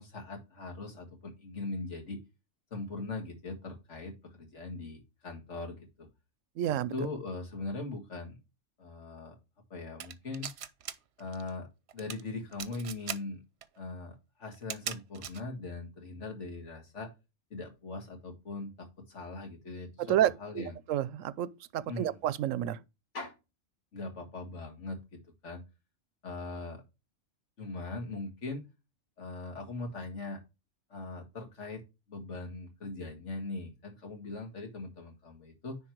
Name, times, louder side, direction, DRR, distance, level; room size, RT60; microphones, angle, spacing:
voice 1, 0.0-2.2 2.7-6.1 6.9-8.4 8.8-9.4 9.7-10.5 11.2-11.7 11.9-13.4 13.8-17.1 17.5-20.7 21.8-22.2 23.1-23.4 23.9-25.0 25.4-25.6 26.2-26.8 27.6-28.6 29.2-30.4 30.9-31.8 32.1-35.8, left 3 dB, 70° left, 2.2 m, -40 dB
voice 2, 6.6-6.9 20.0-22.8, right 11 dB, 90° right, 1.0 m, -30 dB
sound 1, 10.0-10.9 11.2-11.5 11.9-12.2 12.5-13.2 13.6-13.7 14.5-15.4, right 9 dB, 60° right, 0.9 m, -38 dB
9.9 x 3.7 x 4.5 m
omnidirectional pair, 1.3 m